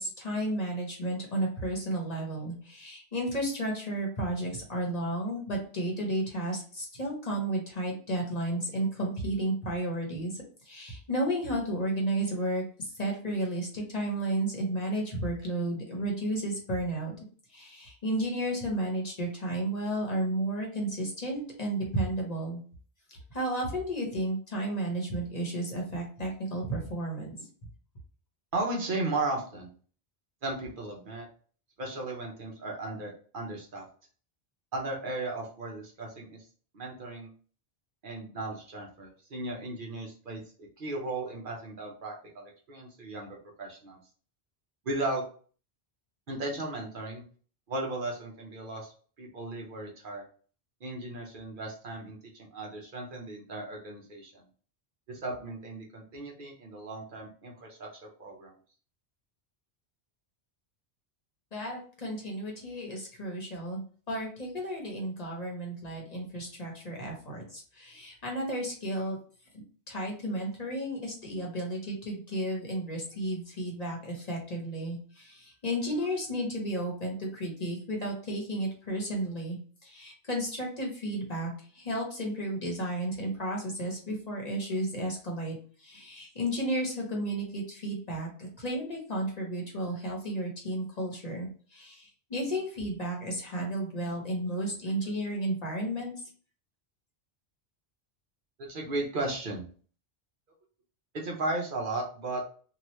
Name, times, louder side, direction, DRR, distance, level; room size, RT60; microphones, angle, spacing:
voice 1, 0.0-17.1 17.5-22.6 23.1-27.5 61.5-69.2 69.9-96.1, right 1 dB, 40° left, -1 dB, 0.8 m, -33 dB
voice 2, 28.5-29.7 30.4-31.3 31.8-33.8 34.7-36.4 36.7-37.3 38.0-40.4 40.8-44.0 44.9-45.2 46.3-47.2 47.7-48.9 49.2-50.2 50.8-54.4 55.1-58.5 98.6-99.6 101.1-102.4, right 2 dB, 55° right, -1 dB, 0.8 m, -36 dB
2.8 x 2.3 x 3.0 m, 0.42 s
omnidirectional pair, 1.1 m